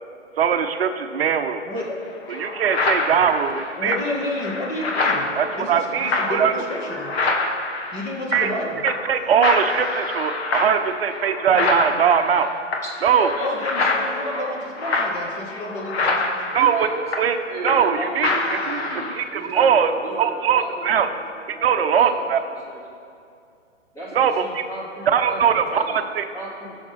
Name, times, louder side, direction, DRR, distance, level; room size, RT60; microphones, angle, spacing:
voice 1, 0.4-1.6 2.4-4.0 5.3-6.5 8.3-8.5 8.8-12.5 13.0-13.3 16.5-16.9 17.2-17.4 17.6-18.3 18.7-19.9 20.2-21.1 21.6-22.4 24.1-24.6 25.1-25.8 26.1-26.2, right 7 dB, 50° right, 7 dB, 0.8 m, -20 dB
voice 2, 1.6-2.0 3.5-7.1 7.9-8.9 13.4-16.6, left 2 dB, 25° left, -2 dB, 1.8 m, -30 dB
sound 1, 1.8-1.9 2.3-8.6 8.9-9.2 9.4-18.0 18.2-19.2, left 3 dB, 55° left, 1.4 m, -26 dB
voice 3, 13.2-15.1 16.6-17.1 17.4-21.2 21.5-22.8 23.9-26.0 26.3-26.8, right 1 dB, 10° left, -6 dB, 2.0 m, -35 dB
17.0 x 6.5 x 3.5 m, 2.4 s
hypercardioid pair, 150°, 37 cm